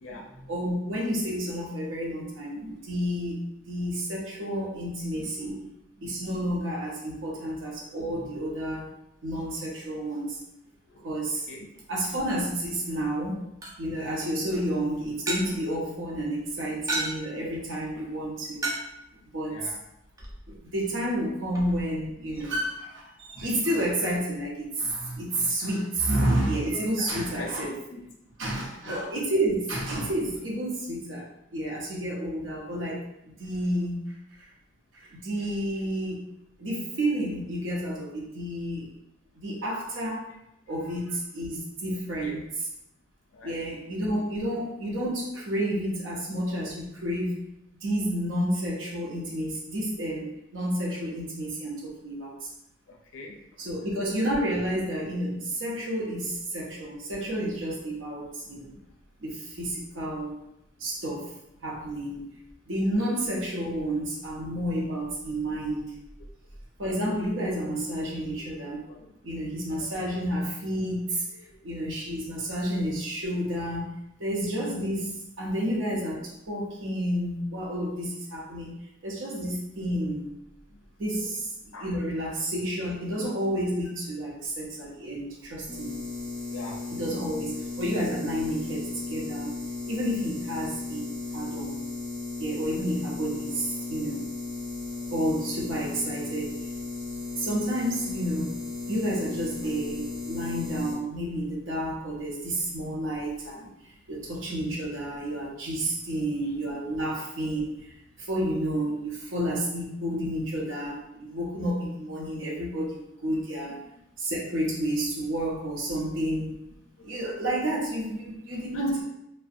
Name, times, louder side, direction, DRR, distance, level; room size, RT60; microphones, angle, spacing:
voice 1, 0.1-3.3 3.7-5.6 6.0-8.9 9.2-10.4 11.0-11.5 11.9-13.5 13.8-18.7 19.3-19.7 20.5-27.7 28.4-34.1 34.9-36.2 36.6-39.0 39.4-40.3 40.7-42.7 43.4-47.4 47.8-52.5 53.6-58.8 59.2-60.4 60.8-61.3 61.6-62.2 62.7-65.9 66.8-68.8 69.2-71.2 71.6-80.3 81.0-81.5 81.8-85.9 86.9-89.5 89.9-91.9 92.4-94.3 95.1-96.5 97.3-98.6 98.9-113.8 114.2-116.5 117.0-119.0, right 1 dB, 75° right, -3 dB, 0.7 m, -30 dB
sound 1, 13.1-22.4, right 2 dB, 20° right, 0.3 m, -38 dB
voice 2, 27.0-28.0 28.5-29.0 41.1-41.2 42.2-42.4 43.3-43.6 52.9-53.4 55.8-55.9 56.2-56.3 61.8-61.9 68.4-68.5 68.8-69.3 69.7-69.8 71.3-71.4 80.7-80.8 81.2-81.3 81.7-81.9 86.5-86.9 94.9-95.0 103.0-103.2 106.4-106.5 117.0-117.2 118.7-119.0, left 2 dB, 80° left, 1 dB, 0.4 m, -43 dB
sound 2, 85.7-100.9, left 3 dB, 35° right, 0.8 m, -35 dB
2.6 x 2.0 x 2.4 m, 0.82 s
head